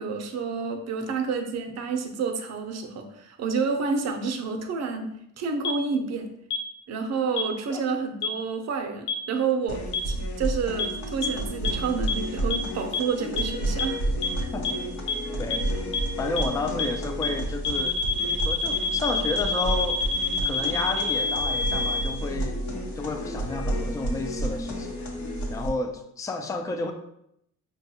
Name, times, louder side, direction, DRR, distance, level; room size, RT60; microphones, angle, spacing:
voice 1, 0.0-6.3 6.9-14.0 14.4-14.5, right 5 dB, 60° right, 6 dB, 0.6 m, -29 dB
sound 1, 5.6-5.7 6.5-6.6 7.4-7.5 8.2-8.3 9.1-9.2 9.9-10.0 10.8-10.9 11.2-11.3 11.6-11.7 12.1-12.2 12.5-12.6 12.9-13.0 13.4-13.5 13.8-13.9 14.2-14.3 14.6-14.7 15.1-15.2 15.5-15.6 15.9-16.0 16.4-16.5 16.8-16.9 17.2-17.3 17.6-22.0, left 5 dB, 85° left, 0.6 m, -26 dB
sound 2, 9.7-25.7, right 1 dB, 70° left, 0.9 m, -31 dB
voice 2, 15.4-15.7 16.2-18.0 18.3-20.1 20.4-22.6 22.9-25.0 25.5-26.9, left 3 dB, 10° left, 5 dB, 0.3 m, -31 dB
4.7 x 2.3 x 2.8 m, 0.76 s
cardioid pair, 90°, 30 cm